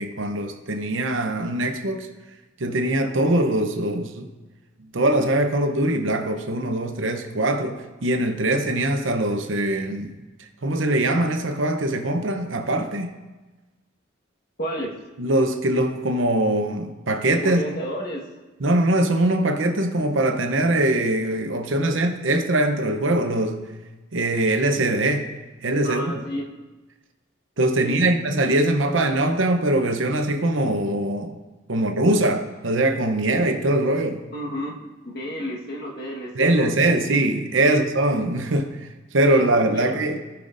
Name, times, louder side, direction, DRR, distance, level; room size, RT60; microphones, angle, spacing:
voice 1, 0.0-2.1 2.6-4.3 4.9-10.2 10.6-13.1 15.2-17.6 18.6-23.7 24.1-25.3 25.6-26.2 27.6-31.4 31.7-34.2 36.3-38.8 39.1-40.2, right 1 dB, 80° right, 0.8 m, -22 dB
voice 2, 14.6-14.9 17.4-18.3 25.8-26.5 27.8-28.1 31.8-32.2 34.3-36.7 37.7-37.8 39.3-40.0, equal, 50° left, 1.5 m, -32 dB
17.0 x 5.8 x 2.6 m
head